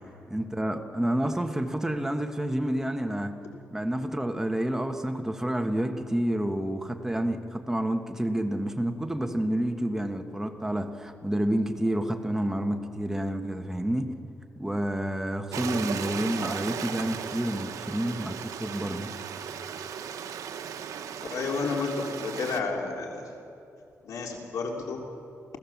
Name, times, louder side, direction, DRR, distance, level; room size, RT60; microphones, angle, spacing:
voice 1, 0.3-3.3 3.7-14.1 14.6-19.1, right 1 dB, 10° right, 5 dB, 1.4 m, -29 dB
Stream, 15.5-22.6, right 7 dB, 85° right, 1.1 m, -36 dB
voice 2, 21.3-23.3 24.0-25.0, left 4 dB, 80° left, 1 dB, 3.2 m, -31 dB
29.0 x 16.0 x 7.3 m, 2.6 s
cardioid pair, 110°, 6 cm